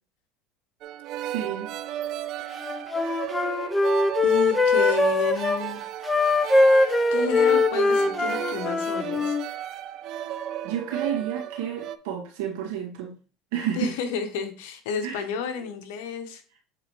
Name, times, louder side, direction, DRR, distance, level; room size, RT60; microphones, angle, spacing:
sound 1, 0.8-12.0, right 12 dB, 60° right, 0.5 m, -34 dB
voice 1, 1.3-1.7 10.6-13.1 13.5-13.9 15.0-15.2, right 9 dB, 80° right, 0 dB, 2.1 m, -30 dB
Wind instrument woodwind instrument, 2.6-5.6 6.0-9.4, left 3 dB, 15° left, 0.6 m, -22 dB
voice 2, 4.2-5.8 7.1-9.4 13.8-16.4, left 5 dB, 80° left, 8 dB, 1.1 m, -31 dB
7.9 x 3.9 x 3.2 m, 0.38 s
supercardioid pair, 100°, 0 cm